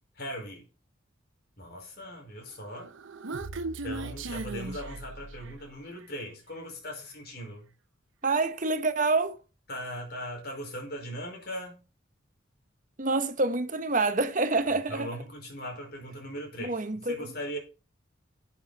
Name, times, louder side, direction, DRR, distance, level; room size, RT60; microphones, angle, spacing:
voice 1, 0.2-0.7 1.6-2.9 3.8-7.7 9.7-11.8 14.9-16.8 17.1-17.6, equal, 50° left, 5.1 m, -39 dB
Human voice, 2.7-5.7, right 2 dB, 75° right, 0.8 m, -37 dB
voice 2, 8.2-9.4 13.0-15.1 16.6-17.3, right 3 dB, 40° right, 1.0 m, -27 dB
10.5 x 8.4 x 4.2 m
head